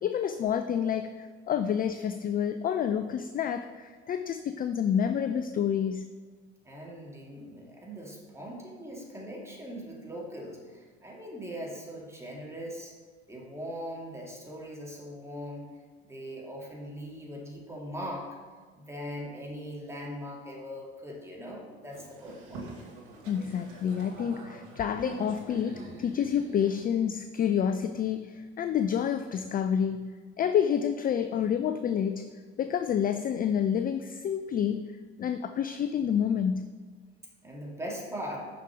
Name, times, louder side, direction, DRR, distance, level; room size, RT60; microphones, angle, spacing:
voice 1, 0.0-6.1 23.3-30.1 30.4-32.3 32.6-34.9 35.2-36.7, left 8 dB, 30° left, 9 dB, 0.4 m, -28 dB
voice 2, 6.6-12.9 13.3-15.7 16.0-18.4 18.8-22.7 37.4-38.4, equal, 10° right, -3 dB, 2.4 m, -40 dB
Boat Water vehicle, 21.9-26.9, right 3 dB, 70° right, 1.5 m, -45 dB
6.6 x 5.9 x 5.0 m, 1.5 s
hypercardioid pair, 60°, 32 cm